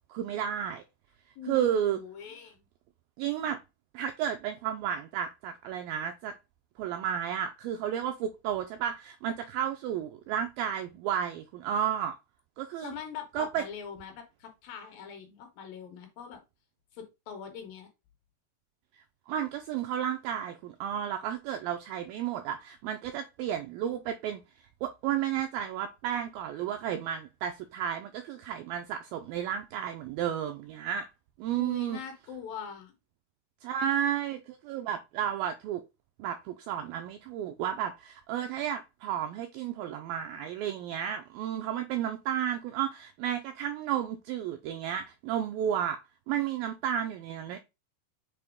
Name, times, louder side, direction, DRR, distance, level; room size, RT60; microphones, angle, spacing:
voice 1, 0.1-0.8 1.5-2.0 3.2-3.6 3.9-6.3 6.8-12.2 12.6-12.9 13.3-13.7 19.3-24.4 24.8-31.1 31.4-32.0 33.6-35.8 36.2-46.0 46.3-47.6, right 9 dB, 85° right, 2.0 m, -32 dB
voice 2, 1.4-2.6 12.8-16.4 16.9-17.9 31.6-32.9, left 7 dB, 75° left, 2.4 m, -42 dB
6.8 x 4.2 x 3.5 m
omnidirectional pair, 4.7 m